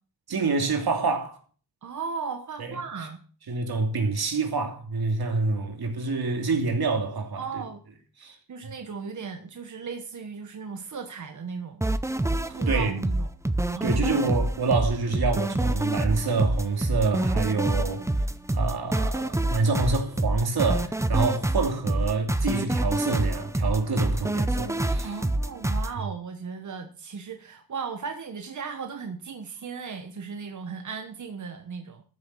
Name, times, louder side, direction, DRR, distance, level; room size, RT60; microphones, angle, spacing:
voice 1, 0.3-1.4 2.6-2.8 3.5-7.6 8.2-8.4 12.7-12.9 13.8-18.1 18.5-25.1, right 4 dB, 85° right, 3.0 m, -27 dB
voice 2, 1.8-3.2 7.4-7.8 8.5-11.8 12.5-13.3 13.7-14.3 25.0-32.0, right 5 dB, 55° right, 1.3 m, -36 dB
sound 1, 11.8-25.9, right 1 dB, 10° right, 0.6 m, -26 dB
14.0 x 7.1 x 6.3 m
wide cardioid pair, 125°, 37 cm